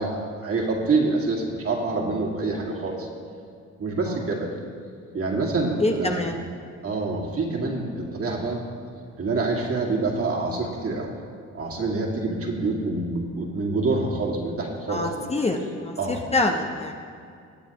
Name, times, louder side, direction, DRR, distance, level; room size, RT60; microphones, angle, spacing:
voice 1, 0.0-3.1 3.8-4.5 5.1-6.3 6.8-8.6 9.2-11.1 11.5-15.3 16.0-16.3, right 3 dB, 50° right, -1 dB, 2.2 m, -26 dB
voice 2, 5.8-6.4 14.9-16.9, left 2 dB, 20° left, 2 dB, 0.8 m, -25 dB
19.5 x 7.9 x 3.0 m, 2.3 s
cardioid pair, 90°, 30 cm